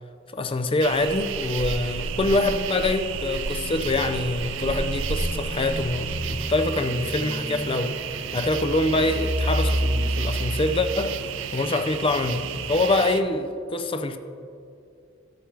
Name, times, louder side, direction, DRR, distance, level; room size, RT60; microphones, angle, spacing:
voice 1, 0.3-8.0 8.3-11.2 11.5-12.4 12.7-14.2, left 2 dB, 30° left, 0.5 m, -25 dB
sound 1, 0.8-13.2, right 6 dB, 80° right, 0.5 m, -32 dB
sound 2, 1.8-12.9, equal, 40° right, 0.8 m, -32 dB
13.0 x 7.9 x 3.4 m
head